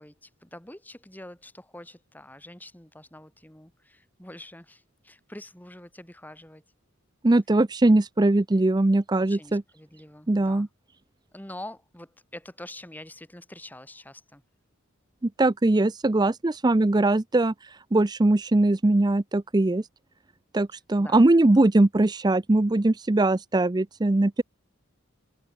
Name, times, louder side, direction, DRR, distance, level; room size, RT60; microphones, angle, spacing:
voice 1, 0.0-6.6 9.1-10.7 11.3-14.4 21.0-21.3, left 1 dB, 10° left, 2.2 m, -45 dB
voice 2, 7.2-9.6 10.3-10.7 15.4-19.9 20.5-24.4, right 2 dB, 20° right, 0.5 m, -21 dB
head